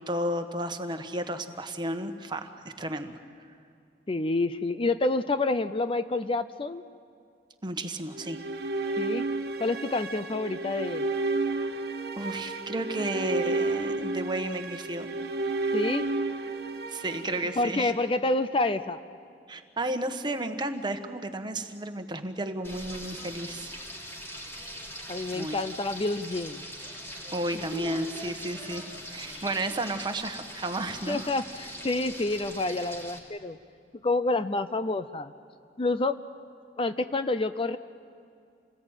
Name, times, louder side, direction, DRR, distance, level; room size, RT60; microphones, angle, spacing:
voice 1, 0.0-3.2 7.6-8.4 12.2-15.1 16.9-17.9 19.5-23.7 25.3-25.6 27.3-28.8 29.1-31.3, right 1 dB, 25° right, 7 dB, 1.3 m, -32 dB
voice 2, 4.1-6.8 9.0-9.3 9.6-11.1 15.7-16.1 17.6-19.0 25.1-26.7 27.7-27.8 29.3-29.4 31.1-33.6 34.0-35.3 35.8-36.2 36.8-37.8, left 2 dB, 30° left, 11 dB, 0.5 m, -28 dB
sound 1, 8.1-18.3, right 3 dB, 60° right, 1.5 m, -32 dB
Frying (food), 22.6-33.2, equal, 15° left, 3.5 m, -41 dB
28.0 x 19.0 x 9.0 m, 2.5 s
head